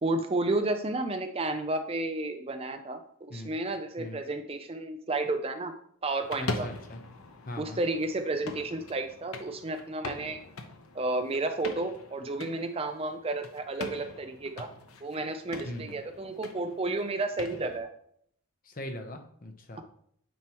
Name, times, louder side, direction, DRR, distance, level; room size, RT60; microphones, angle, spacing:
voice 1, 0.0-5.7 6.0-6.7 7.6-10.4 10.9-14.7 15.0-17.9, right 2 dB, 25° right, 7 dB, 0.5 m, -32 dB
sound 1, 6.2-17.8, left 3 dB, 85° left, 0.9 m, -42 dB
voice 2, 6.4-7.0 7.4-7.8 15.6-16.0 18.6-19.8, left 1 dB, 40° left, 5 dB, 0.9 m, -40 dB
9.2 x 4.5 x 3.0 m, 0.66 s
head